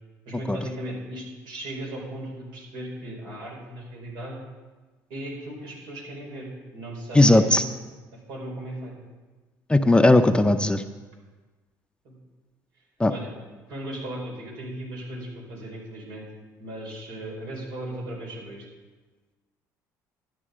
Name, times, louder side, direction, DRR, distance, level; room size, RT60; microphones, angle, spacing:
voice 1, 0.3-4.4 5.1-6.5 6.7-7.7 8.3-8.9 12.0-12.1 13.1-13.3 13.7-16.3 16.6-18.7, right 1 dB, 75° right, -1 dB, 4.7 m, -37 dB
voice 2, 7.1-7.6 9.7-10.8 13.0-13.1, left 2 dB, 10° left, 8 dB, 0.6 m, -17 dB
12.5 x 9.7 x 5.0 m, 1.3 s
supercardioid pair, 80°, 8 cm